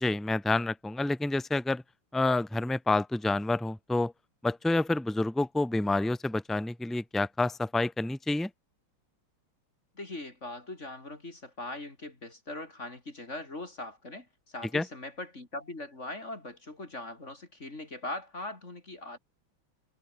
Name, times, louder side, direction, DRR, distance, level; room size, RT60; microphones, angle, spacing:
voice 1, 0.0-1.8 2.1-4.1 4.4-8.5 14.7-14.8, left 2 dB, ahead, 0.3 m, -28 dB
voice 2, 10.0-19.2, left 2 dB, 35° left, 3.5 m, -41 dB
omnidirectional pair, 2.3 m